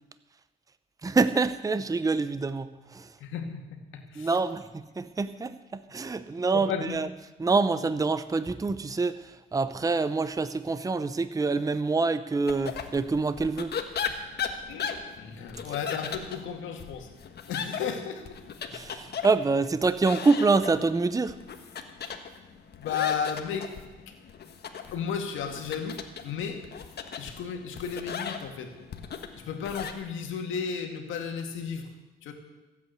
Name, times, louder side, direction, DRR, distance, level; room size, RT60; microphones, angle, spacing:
voice 1, 1.0-3.1 4.2-7.1 7.4-13.7 18.7-21.4, right 4 dB, 15° right, 13 dB, 0.7 m, -26 dB
voice 2, 3.2-4.4 6.5-7.0 14.7-18.4 22.8-23.7 24.9-26.6 27.2-28.7 29.4-31.9 32.2-32.3, left 7 dB, 80° left, 4 dB, 2.2 m, -34 dB
sound 1, 12.5-29.9, left 7 dB, 55° left, 1.4 m, -38 dB
16.0 x 8.4 x 8.1 m, 1.1 s
cardioid pair, 90°, 20 cm